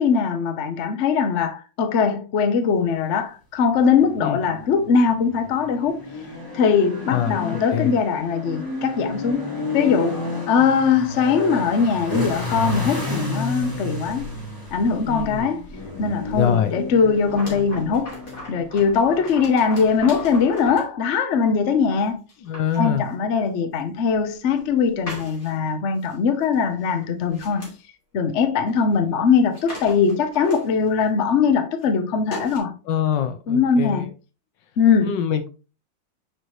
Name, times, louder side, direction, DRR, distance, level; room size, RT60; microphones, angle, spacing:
voice 1, 0.0-6.0 6.5-9.5 9.7-10.2 10.5-14.3 14.7-15.6 16.0-18.2 18.5-22.2 22.8-27.7 28.1-32.7 33.5-34.1 34.8-35.2, left 6 dB, 55° left, 0.8 m, -21 dB
sound 1, 3.6-20.3, left 2 dB, 10° left, 2.1 m, -32 dB
voice 2, 7.1-8.0 10.6-10.7 15.1-15.5 16.3-16.7 22.4-23.1 32.9-34.1 35.0-35.5, left 9 dB, 70° left, 1.3 m, -24 dB
sound 2, 17.2-20.9 21.7-21.8 22.3-22.8 23.4-23.5 24.2-24.7 25.1-25.7 26.0-26.2 26.4-26.6 26.9-27.7 28.7-28.8 29.0-29.1 29.3-31.0 31.8-31.9 32.3-32.6, left 1 dB, 35° left, 3.0 m, -38 dB
6.4 x 4.7 x 3.1 m
omnidirectional pair, 2.2 m